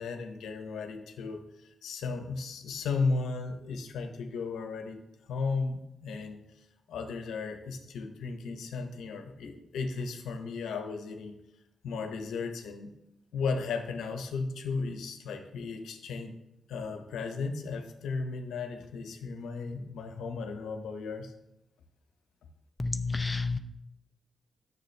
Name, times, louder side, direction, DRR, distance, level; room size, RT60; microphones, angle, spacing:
voice 1, 0.0-1.5 1.8-6.4 6.9-11.4 11.8-13.0 13.3-16.3 16.7-21.3, left 4 dB, 80° left, 6 dB, 0.9 m, -35 dB
voice 2, 22.8-23.6, left 3 dB, 25° left, 8 dB, 0.6 m, -30 dB
9.1 x 6.9 x 3.3 m, 0.87 s
supercardioid pair, 45°, 0 cm